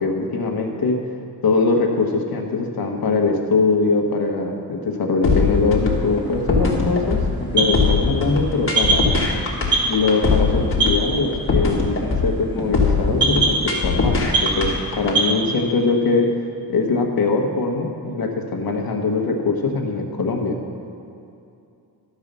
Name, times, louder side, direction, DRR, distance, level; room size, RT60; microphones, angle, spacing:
voice 1, 0.0-1.0 1.4-9.1 9.8-16.3 16.7-20.6, left 3 dB, 65° left, 2 dB, 1.3 m, -22 dB
sound 1, 5.2-15.2, left 4 dB, 35° left, 1.5 m, -21 dB
sound 2, 5.4-15.3, right 3 dB, 10° right, 2.3 m, -26 dB
12.5 x 4.8 x 6.7 m, 2.6 s
wide cardioid pair, 140°, 39 cm